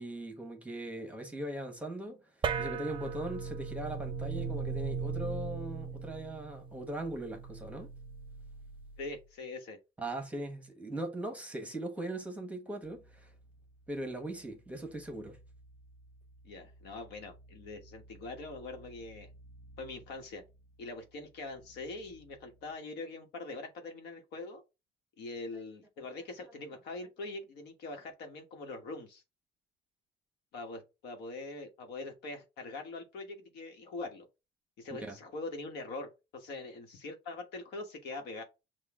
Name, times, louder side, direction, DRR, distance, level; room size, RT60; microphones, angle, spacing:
voice 1, 0.0-7.9 10.0-13.3 13.9-15.4 25.5-25.6 26.0-26.1 35.0-35.2, right 1 dB, 10° right, 1.2 m, -40 dB
sound 1, 2.4-9.2, right 6 dB, 30° right, 0.5 m, -38 dB
voice 2, 9.0-9.8 16.4-19.3 19.8-20.4 20.8-24.6 25.2-29.2 30.5-34.3 34.8-38.4, left 3 dB, 80° left, 1.3 m, -43 dB
sound 2, 12.8-22.8, right 1 dB, 45° left, 1.1 m, -58 dB
5.9 x 2.4 x 3.6 m
cardioid pair, 110°, 17 cm